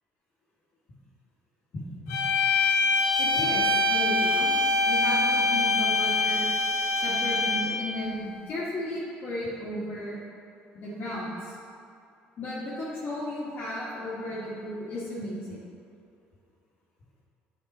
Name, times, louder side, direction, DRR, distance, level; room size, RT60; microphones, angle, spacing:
voice 1, 1.7-2.2 3.2-4.5 4.8-6.5 7.0-10.2 10.7-11.5 12.4-15.6, left 1 dB, 55° left, -10 dB, 1.7 m, -34 dB
sound 1, 2.1-7.8, left 2 dB, 90° left, 0.9 m, -24 dB
7.5 x 4.6 x 4.2 m, 2.5 s
supercardioid pair, 90°, 4 cm